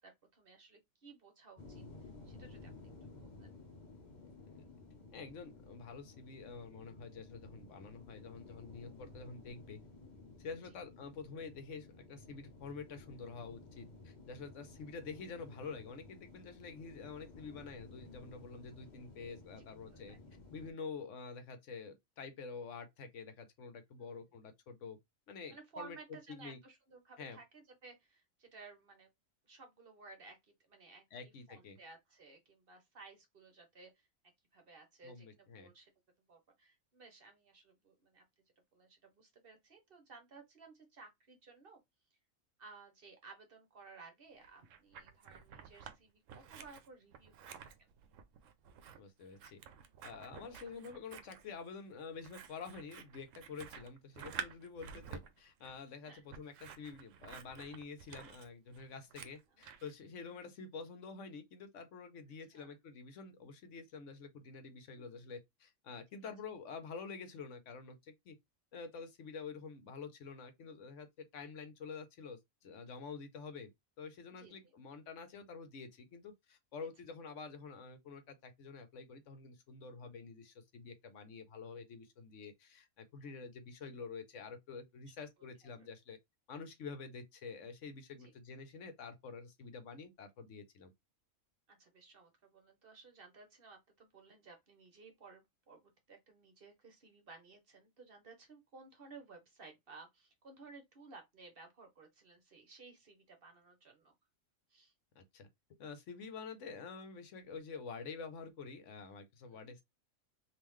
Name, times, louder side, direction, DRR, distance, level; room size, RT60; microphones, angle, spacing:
voice 1, 0.0-2.7 3.0-3.6 9.0-9.1 19.6-20.2 24.0-24.2 25.5-29.1 29.4-34.1 34.5-35.9 36.3-38.2 38.7-41.8 42.6-47.9 56.0-56.2 59.5-59.6 62.5-62.7 65.0-65.2 70.6-70.8 74.3-74.7 80.0-80.2 83.2-83.4 85.4-85.9 88.1-88.3 91.7-104.1 104.7-104.9 109.4-109.7, right 4 dB, 50° right, 1.0 m, -57 dB
sound 1, 1.6-20.7, left 3 dB, 40° left, 0.8 m, -55 dB
voice 2, 5.1-9.8 10.4-20.2 20.5-25.0 25.3-26.0 26.4-26.6 27.2-27.4 31.1-31.8 35.0-35.7 49.0-49.6 50.0-68.4 68.7-73.7 74.0-86.2 86.5-90.9 105.1-105.5 105.8-109.8, left 5 dB, 70° left, 1.0 m, -48 dB
Scissors, 44.4-46.0 46.3-59.9, right 7 dB, 75° right, 0.9 m, -50 dB
3.6 x 2.7 x 3.0 m
omnidirectional pair, 1.4 m